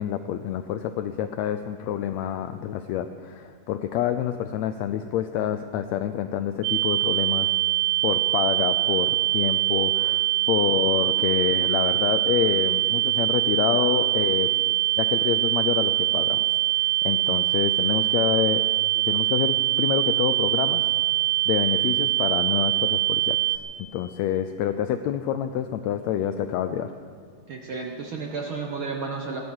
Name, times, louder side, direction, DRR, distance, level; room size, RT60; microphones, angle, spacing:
voice 1, 0.0-7.5 8.0-14.5 15.0-16.4 17.0-18.7 19.1-20.9 21.5-23.4 23.9-26.9, left 10 dB, 80° left, 9 dB, 1.6 m, -27 dB
sound 1, 6.6-23.6, right 15 dB, 80° right, 2.3 m, -23 dB
voice 2, 27.5-29.4, right 4 dB, 55° right, 1 dB, 1.5 m, -32 dB
18.0 x 12.5 x 6.4 m, 2.2 s
omnidirectional pair, 3.7 m